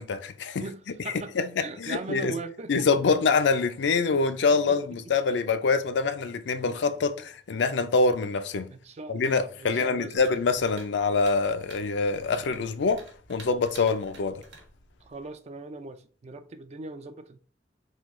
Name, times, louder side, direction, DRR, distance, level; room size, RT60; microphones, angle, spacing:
voice 1, 0.0-0.6 1.4-2.3 2.7-8.7 9.1-13.0 13.3-14.4, left 4 dB, 70° left, 0.4 m, -25 dB
voice 2, 0.6-3.0 4.0-4.2 4.5-4.8 8.7-10.2 15.0-17.4, right 3 dB, 35° right, 0.4 m, -40 dB
sound 1, 10.2-15.4, right 3 dB, 90° right, 1.1 m, -51 dB
3.8 x 2.8 x 3.0 m
head